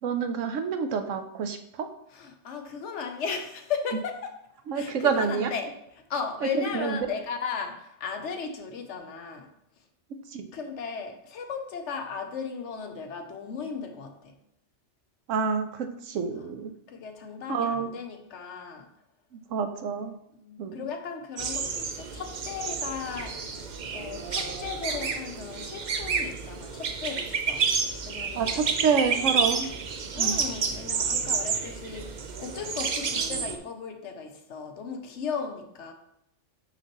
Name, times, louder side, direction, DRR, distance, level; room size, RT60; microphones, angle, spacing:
voice 1, 0.0-1.9 4.7-5.5 6.5-7.0 10.3-10.5 15.3-16.7 17.5-17.9 19.3-20.2 20.6-20.8 28.4-29.7 30.2-30.4, right 6 dB, 75° right, 8 dB, 1.0 m, -28 dB
voice 2, 2.1-4.4 4.7-9.5 10.5-14.4 16.4-16.5 16.9-18.9 20.3-23.4 23.9-27.7 28.1-28.5 30.1-35.9, left 6 dB, 70° left, 6 dB, 1.0 m, -36 dB
sound 1, 21.4-33.6, right 5 dB, 50° right, 0.5 m, -30 dB
5.9 x 5.9 x 3.0 m, 0.79 s
omnidirectional pair, 1.3 m